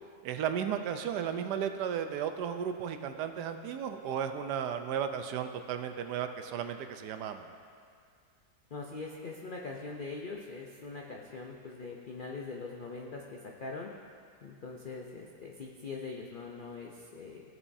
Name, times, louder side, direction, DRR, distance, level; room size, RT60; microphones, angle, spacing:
voice 1, 0.2-7.4, right 8 dB, 75° right, 7 dB, 1.1 m, -34 dB
voice 2, 8.7-13.9 14.4-17.4, left 4 dB, 75° left, -1 dB, 0.4 m, -42 dB
15.5 x 7.0 x 2.7 m, 2.2 s
omnidirectional pair, 1.8 m